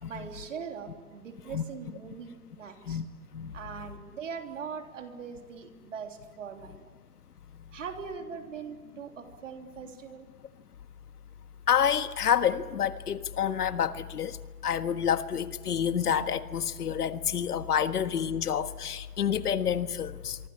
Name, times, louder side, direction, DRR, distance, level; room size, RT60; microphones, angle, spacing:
voice 1, 0.0-3.0 3.5-6.9 7.7-10.3, right 6 dB, 50° right, 3.4 m, -41 dB
voice 2, 11.7-14.4 14.6-20.4, left 8 dB, 75° left, 1.6 m, -28 dB
26.0 x 24.0 x 8.7 m
hypercardioid pair, 180°, 46 cm